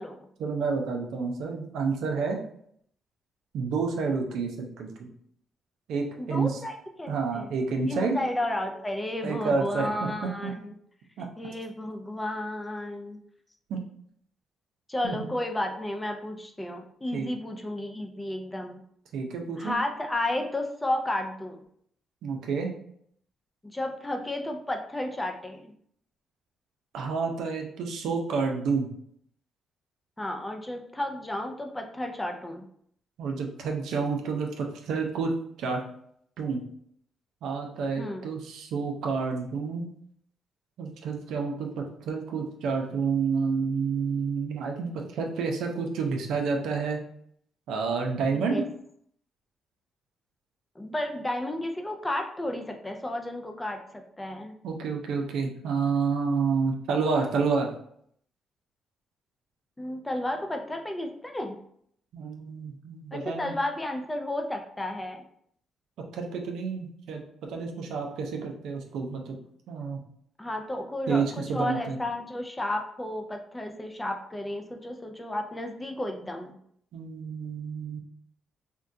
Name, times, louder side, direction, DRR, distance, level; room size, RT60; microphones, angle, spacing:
voice 1, 0.4-2.4 3.5-5.1 5.9-6.5 7.1-8.2 9.2-10.5 11.2-11.3 13.7-13.8 15.0-15.3 17.1-17.3 19.1-19.8 22.2-22.7 26.9-28.9 33.2-35.3 35.6-35.8 36.4-36.6 37.4-39.9 40.8-47.0 47.7-48.6 54.6-57.7 62.1-63.5 66.1-67.2 67.5-69.4 69.7-70.0 71.1-72.0 76.9-78.0, right 5 dB, 80° right, 2 dB, 0.5 m, -29 dB
voice 2, 6.2-7.5 7.9-10.7 11.2-13.2 14.9-18.8 19.6-21.6 23.6-25.7 30.2-32.6 38.0-38.2 48.3-48.7 50.8-54.5 59.8-61.6 63.1-65.3 70.4-76.6, left 1 dB, 15° left, 4 dB, 0.4 m, -32 dB
3.6 x 2.2 x 2.6 m, 0.67 s
cardioid pair, 90°, 0 cm